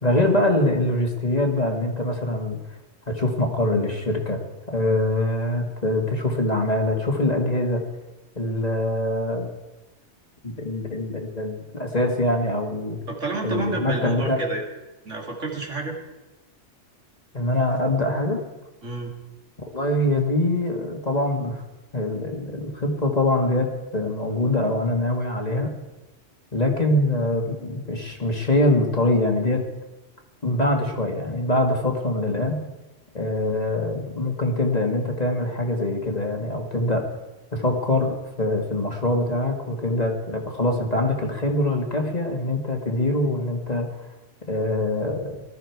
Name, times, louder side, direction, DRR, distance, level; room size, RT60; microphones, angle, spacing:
voice 1, 0.0-2.6 3.1-4.4 4.7-7.8 8.4-9.5 10.4-13.0 13.4-14.4 17.3-18.4 19.7-21.6 21.9-25.7 26.5-29.6 30.4-32.6 33.1-37.0 37.5-43.9 44.5-45.4, left 1 dB, 35° left, 2 dB, 2.0 m, -24 dB
voice 2, 13.1-14.7 15.0-16.0 18.8-19.1, right 2 dB, 75° right, 0 dB, 2.9 m, -29 dB
20.0 x 13.0 x 4.7 m, 1.1 s
omnidirectional pair, 1.3 m